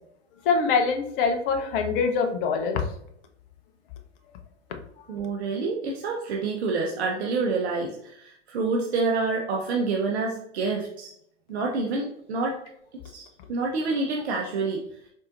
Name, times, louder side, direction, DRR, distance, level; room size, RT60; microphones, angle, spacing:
voice 1, 0.4-2.8, left 5 dB, 50° left, 4 dB, 0.9 m, -24 dB
voice 2, 5.1-11.1 11.5-12.6 13.1-14.8, right 3 dB, 60° right, 0 dB, 0.9 m, -27 dB
4.7 x 4.3 x 2.5 m, 0.72 s
hypercardioid pair, 110°, 35 cm